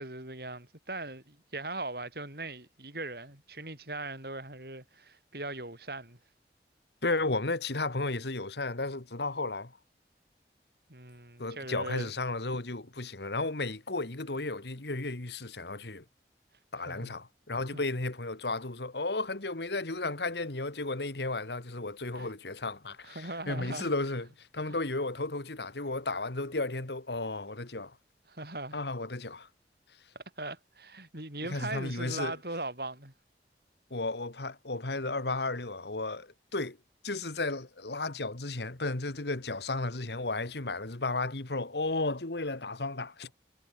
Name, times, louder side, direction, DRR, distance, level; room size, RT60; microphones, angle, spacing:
voice 1, 0.0-6.2 10.9-12.1 16.9-17.1 17.7-17.8 22.1-22.3 23.0-23.9 24.7-24.8 28.3-28.8 30.2-33.1, right 2 dB, 60° right, 7.3 m, -40 dB
voice 2, 7.0-9.8 11.4-16.0 16.7-28.0 28.7-29.5 31.4-32.3 33.9-36.8 37.0-43.3, left 2 dB, 75° left, 1.9 m, -34 dB
head